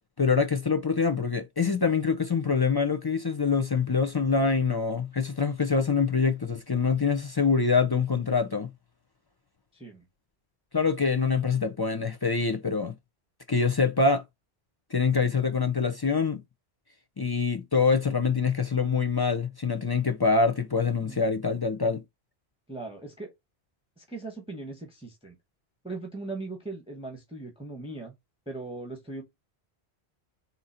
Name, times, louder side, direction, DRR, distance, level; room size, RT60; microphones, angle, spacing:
voice 1, 0.2-8.7 10.7-13.0 13.5-14.2 14.9-16.4 17.2-22.0, left 5 dB, 40° left, 0.3 m, -25 dB
voice 2, 9.7-10.0 21.0-21.2 22.7-23.3 24.0-25.4 25.8-28.1 28.5-29.2, right 3 dB, 5° right, 0.9 m, -39 dB
3.9 x 2.8 x 4.2 m
omnidirectional pair, 1.1 m